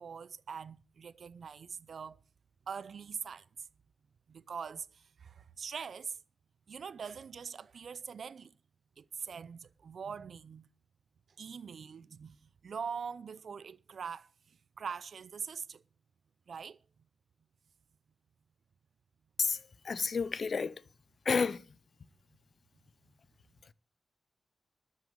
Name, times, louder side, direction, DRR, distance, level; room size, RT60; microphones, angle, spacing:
voice 1, 0.0-2.2 2.7-3.4 4.3-6.2 6.7-8.5 9.0-10.7 11.4-12.4 12.6-14.3 14.8-15.8 16.5-16.8, right 6 dB, 70° right, 0.5 m, -43 dB
voice 2, 19.4-20.8 21.2-21.6, left 5 dB, 55° left, 0.6 m, -31 dB
12.5 x 6.4 x 8.7 m
wide cardioid pair, 125°, 0 cm